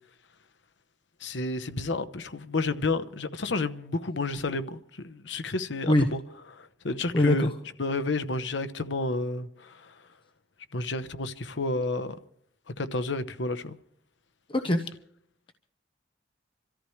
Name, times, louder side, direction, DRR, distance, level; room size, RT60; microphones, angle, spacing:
voice 1, 1.2-6.2 6.5-7.5 7.8-9.9 10.7-12.1 12.8-13.8, left 2 dB, 75° left, 0.9 m, -31 dB
voice 2, 7.1-7.5 14.5-14.9, left 1 dB, 30° left, 0.9 m, -22 dB
26.5 x 14.0 x 3.3 m
head